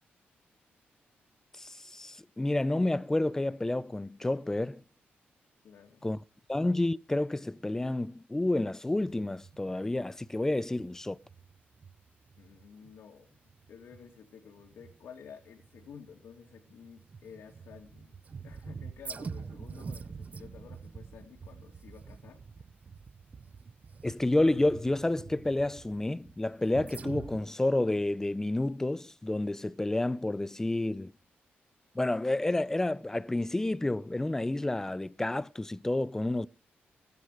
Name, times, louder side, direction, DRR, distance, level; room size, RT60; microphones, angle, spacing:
voice 1, 1.6-4.8 6.0-6.2 6.5-11.2 24.0-31.1 32.0-36.5, left 2 dB, 10° left, 0.5 m, -30 dB
voice 2, 5.6-6.0 12.4-13.4 13.7-18.1 18.4-22.7, left 7 dB, 80° left, 2.4 m, -52 dB
sound 1, 8.9-27.4, right 5 dB, 40° right, 0.6 m, -46 dB
19.0 x 9.5 x 4.9 m
cardioid pair, 110°, 4 cm